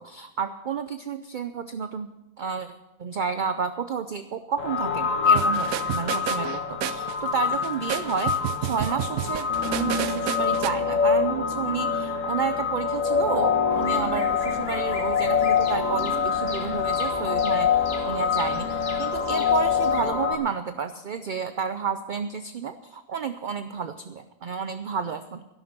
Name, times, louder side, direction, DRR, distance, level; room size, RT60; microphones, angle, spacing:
voice 1, 0.0-2.1 2.4-2.7 3.0-25.5, right 6 dB, 55° right, 10 dB, 0.6 m, -31 dB
sound 1, 4.6-20.3, left 6 dB, 65° left, 1.8 m, -25 dB
sound 2, 5.4-10.7, right 11 dB, 80° right, 1.1 m, -31 dB
Bird vocalization bird call bird song, 13.7-20.1, left 2 dB, 45° left, 1.8 m, -40 dB
12.5 x 11.0 x 6.7 m, 0.97 s
omnidirectional pair, 1.5 m